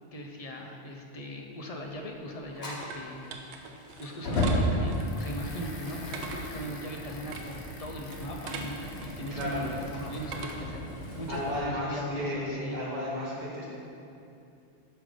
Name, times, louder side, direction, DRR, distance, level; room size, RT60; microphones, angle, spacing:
voice 1, 0.1-3.3 4.0-12.8, equal, 40° left, 1 dB, 0.6 m, -39 dB
sound 1, 1.9-10.9, right 4 dB, 80° right, 0.9 m, -44 dB
Fire, 2.6-11.6, equal, 65° left, 1.3 m, -35 dB
sound 2, 5.0-10.7, left 3 dB, 80° left, 1.1 m, -48 dB
voice 2, 6.1-6.8 9.3-9.7 11.3-13.7, left 1 dB, 40° right, -6 dB, 1.4 m, -34 dB
5.5 x 5.2 x 4.9 m, 2.6 s
omnidirectional pair, 1.2 m